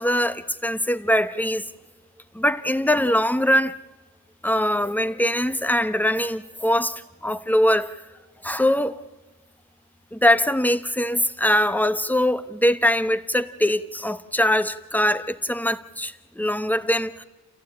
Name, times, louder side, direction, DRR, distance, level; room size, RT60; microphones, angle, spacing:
voice 1, 0.0-1.6 2.3-3.8 4.4-8.0 8.4-9.0 10.1-17.2, left 1 dB, 5° left, 0.8 m, -22 dB
29.0 x 15.0 x 8.7 m
wide cardioid pair, 100°, 30 cm